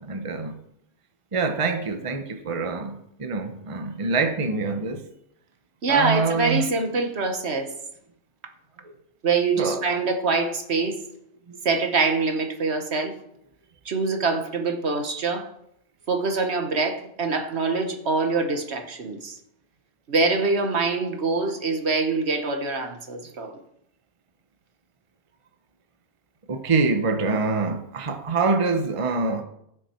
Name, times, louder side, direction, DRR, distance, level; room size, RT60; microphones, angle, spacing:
voice 1, 0.1-0.6 1.3-5.0 5.9-6.7 8.8-8.9 9.6-9.8 11.5-11.6 26.5-29.4, right 4 dB, 30° right, 0.9 m, -25 dB
voice 2, 5.8-7.7 9.2-11.0 11.6-13.2 13.8-15.5 16.1-19.4 20.1-23.6, right 4 dB, 70° right, 1.5 m, -24 dB
16.0 x 6.5 x 4.4 m
omnidirectional pair, 1.2 m